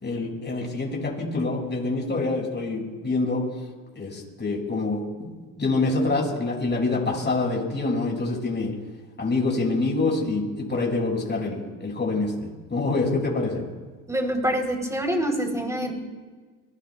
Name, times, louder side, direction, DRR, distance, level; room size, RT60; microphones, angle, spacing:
voice 1, 0.0-3.4 4.0-8.7 9.2-13.6, left 3 dB, 30° left, -1 dB, 5.8 m, -26 dB
voice 2, 14.1-15.9, right 1 dB, 10° right, 2 dB, 3.5 m, -25 dB
22.5 x 18.5 x 2.3 m, 1.4 s
cardioid pair, 80°, 37 cm